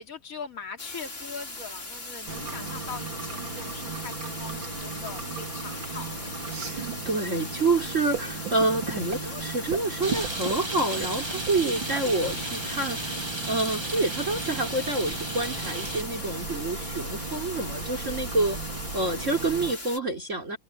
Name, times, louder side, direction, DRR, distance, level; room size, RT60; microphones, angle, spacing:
voice 1, 0.0-6.4, left 5 dB, 45° left, 3.2 m, -41 dB
sound 1, 0.8-20.0, left 2 dB, 30° left, 3.8 m, -39 dB
sound 2, 2.3-19.7, right 4 dB, 75° right, 3.4 m, -36 dB
voice 2, 6.7-13.1 13.5-18.6 18.9-20.6, right 2 dB, 40° right, 4.2 m, -28 dB
Rain, 10.0-16.0, right 2 dB, 15° right, 2.0 m, -35 dB
omnidirectional pair, 2.1 m